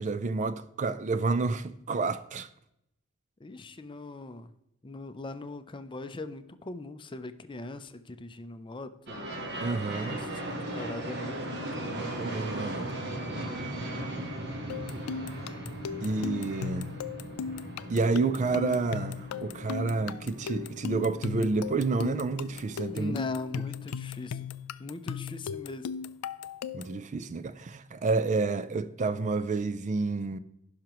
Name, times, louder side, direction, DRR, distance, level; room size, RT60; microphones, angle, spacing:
voice 1, 0.0-2.5 9.6-10.2 12.0-12.9 16.0-16.9 17.9-23.2 26.7-30.4, right 3 dB, 35° right, 0.4 m, -29 dB
voice 2, 3.4-4.5 4.8-9.3 10.1-10.4 10.7-12.1 22.9-24.5 24.8-25.9, left 2 dB, 20° left, 0.5 m, -40 dB
sound 1, 9.1-23.3, right 1 dB, 50° right, 1.4 m, -38 dB
Microwave oven, 13.8-27.3, left 3 dB, 60° left, 0.8 m, -52 dB
sound 2, 14.7-27.0, left 6 dB, 90° left, 0.4 m, -37 dB
15.5 x 5.8 x 3.0 m
head